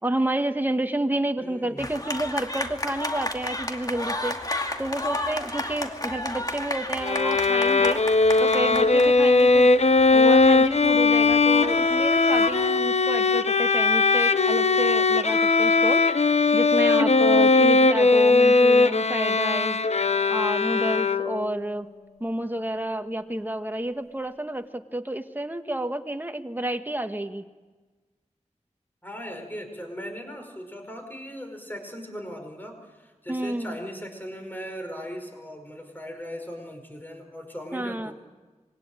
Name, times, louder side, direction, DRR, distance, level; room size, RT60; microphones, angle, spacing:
voice 1, 0.0-8.0 8.4-9.7 10.1-16.0 16.5-19.8 20.3-21.9 22.2-27.4 33.3-33.7 37.7-38.1, right 1 dB, 15° right, 6 dB, 1.6 m, -30 dB
voice 2, 1.4-1.9 29.0-38.1, equal, 15° left, 4 dB, 5.1 m, -38 dB
sound 1, 1.8-12.7, left 1 dB, 30° left, 2.4 m, -33 dB
Bowed string instrument, 7.0-21.5, left 3 dB, 60° left, 0.9 m, -19 dB
26.0 x 22.0 x 9.1 m, 1.3 s
wide cardioid pair, 75°, 12 cm